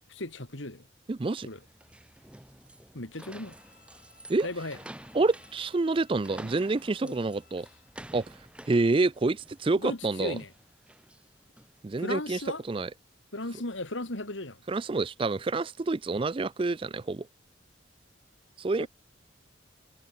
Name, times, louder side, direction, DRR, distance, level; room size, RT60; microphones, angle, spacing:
voice 1, 0.1-0.8 1.4-1.6 2.9-3.6 4.4-4.8 7.0-7.2 9.7-10.5 12.0-12.6 13.3-14.6 18.8-18.9, left 2 dB, 75° left, 3.2 m, -36 dB
voice 2, 1.1-1.5 4.3-4.5 5.1-7.7 8.1-8.2 8.7-10.4 11.8-12.4 12.7-12.9 14.7-17.3 18.6-18.9, right 3 dB, 25° right, 0.4 m, -27 dB
sound 1, 1.4-11.8, right 1 dB, 5° right, 1.5 m, -50 dB
Bowed string instrument, 3.1-8.0, left 7 dB, 45° left, 6.9 m, -63 dB
head